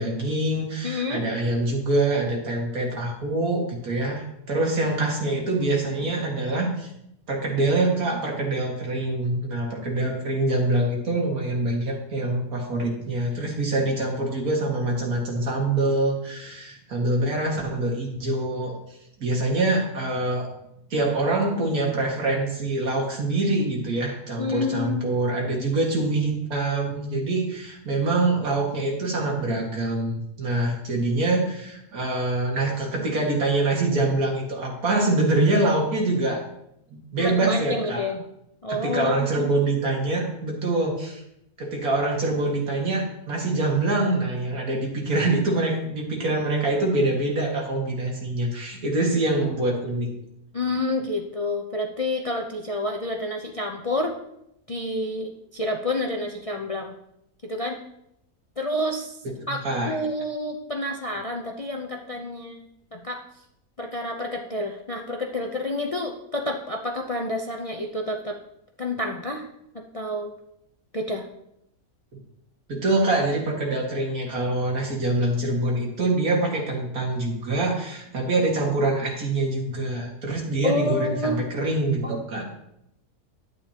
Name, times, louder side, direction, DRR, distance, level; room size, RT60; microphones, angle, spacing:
voice 1, 0.0-6.9 7.3-18.7 19.2-20.5 20.9-36.4 36.9-38.0 38.7-41.2 41.6-50.1 59.4-60.0 72.7-82.4, right 2 dB, 80° right, -1 dB, 2.4 m, -25 dB
voice 2, 0.8-1.2 24.4-25.1 37.2-38.2 38.6-39.5 50.5-54.1 54.7-56.9 57.4-57.8 58.6-59.2 59.5-62.6 62.9-63.2 63.8-68.4 68.8-69.4 69.9-70.3 70.9-71.3 80.6-81.4, left 1 dB, 35° left, 1 dB, 0.5 m, -29 dB
11.0 x 9.1 x 2.9 m, 0.79 s
omnidirectional pair, 1.5 m